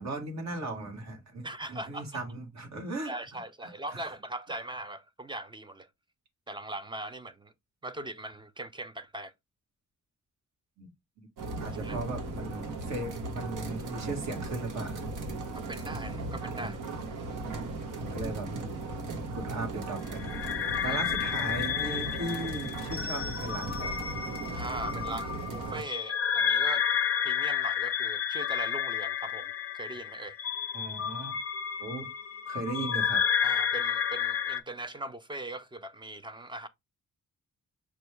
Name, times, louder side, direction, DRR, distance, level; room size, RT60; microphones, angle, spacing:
voice 1, 0.0-4.0 10.8-10.9 11.2-11.3 11.6-15.1 16.6-16.7 18.0-18.6 19.4-24.1 30.7-31.4 31.8-32.1 32.5-33.2, right 2 dB, 60° right, 1.4 m, -37 dB
voice 2, 1.4-2.1 3.1-5.9 6.5-7.5 7.8-9.3 11.8-12.0 15.7-16.8 20.8-21.0 24.5-26.9 27.2-30.4 33.4-36.7, right 2 dB, 15° right, 0.3 m, -40 dB
sound 1, 11.4-25.8, right 3 dB, 85° right, 1.0 m, -37 dB
sound 2, 20.1-34.6, left 8 dB, 50° left, 0.4 m, -31 dB
5.9 x 2.3 x 3.2 m
wide cardioid pair, 140°, 31 cm